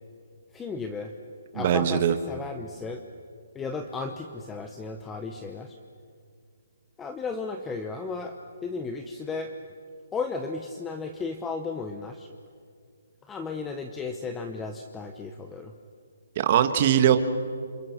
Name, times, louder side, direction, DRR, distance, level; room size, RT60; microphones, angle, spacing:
voice 1, 0.5-1.1 1.5-3.0 3.5-5.8 7.0-8.4 8.6-9.5 10.1-12.3 13.3-15.7, left 4 dB, 10° left, 6 dB, 0.8 m, -34 dB
voice 2, 1.5-2.2 16.4-17.2, right 10 dB, 35° right, 8 dB, 1.5 m, -21 dB
28.0 x 27.5 x 6.0 m, 2.3 s
hypercardioid pair, 165°, 0 cm